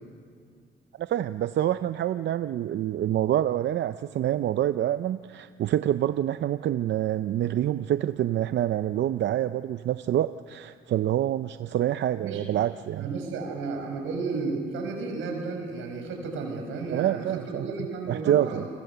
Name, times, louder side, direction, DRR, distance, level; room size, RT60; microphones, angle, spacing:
voice 1, 1.0-13.1 16.9-17.7 18.1-18.6, right 12 dB, 65° right, 12 dB, 0.6 m, -26 dB
voice 2, 13.0-18.7, right 4 dB, 90° right, 3 dB, 5.7 m, -33 dB
29.0 x 23.5 x 6.9 m, 2.2 s
cardioid pair, 90°, 20 cm